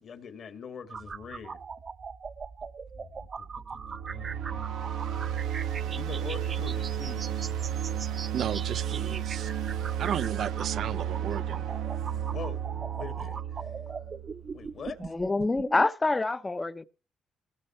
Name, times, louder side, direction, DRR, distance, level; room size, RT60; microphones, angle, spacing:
voice 1, 0.0-1.6 2.9-4.7 6.0-7.5 12.3-12.7 12.9-13.7 14.5-15.1, left 6 dB, 55° left, 2.1 m, -43 dB
sound 1, 0.9-15.9, right 5 dB, 40° right, 0.8 m, -41 dB
sound 2, 3.7-14.7, right 10 dB, 90° right, 1.3 m, -33 dB
voice 2, 8.3-9.5 10.0-11.6, right 9 dB, 65° right, 0.6 m, -34 dB
voice 3, 15.0-16.8, left 2 dB, 20° left, 0.8 m, -26 dB
19.0 x 6.7 x 4.4 m
cardioid pair, 90°, 0 cm